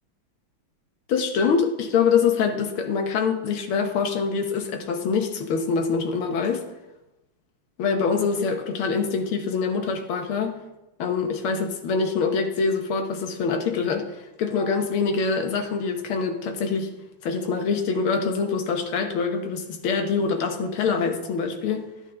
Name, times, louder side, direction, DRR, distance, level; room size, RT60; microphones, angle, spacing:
voice 1, 1.1-6.6 7.8-10.6 11.0-14.1 14.4-16.9 17.2-21.9, left 5 dB, 75° left, 5 dB, 1.9 m, -24 dB
13.0 x 8.3 x 3.8 m, 0.97 s
omnidirectional pair, 2.4 m